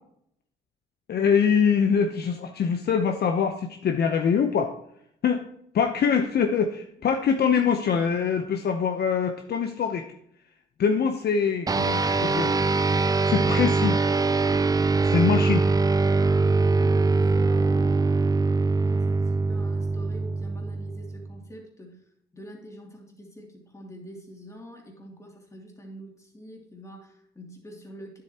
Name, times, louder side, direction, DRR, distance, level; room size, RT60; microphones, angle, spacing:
voice 1, 1.1-4.7 5.2-10.0 10.8-12.5 13.3-14.0 15.1-15.7, left 6 dB, 55° left, 5 dB, 0.8 m, -24 dB
sound 1, 11.7-21.4, right 3 dB, 20° right, 0.4 m, -23 dB
voice 2, 16.4-22.0 22.3-28.2, equal, 15° left, 0 dB, 2.6 m, -45 dB
9.6 x 7.8 x 2.9 m, 0.70 s
cardioid pair, 90°, 20 cm